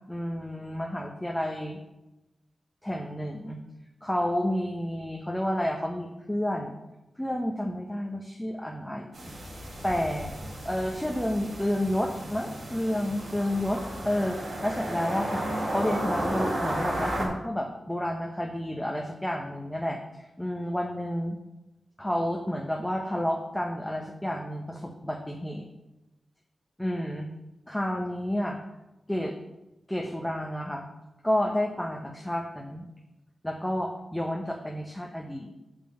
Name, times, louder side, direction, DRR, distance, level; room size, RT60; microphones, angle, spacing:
voice 1, 0.1-1.8 2.8-3.6 4.0-6.7 7.2-9.2 9.6-10.3 10.6-15.5 15.7-21.4 22.0-25.7 26.8-27.3 27.7-28.6 29.1-29.4 29.9-30.8 31.2-32.8 33.4-35.5, left 1 dB, 5° left, 1 dB, 0.9 m, -30 dB
sound 1, 9.1-17.3, right 1 dB, 65° right, 3.2 m, -33 dB
6.7 x 5.7 x 6.3 m, 0.98 s
wide cardioid pair, 80°, 0 cm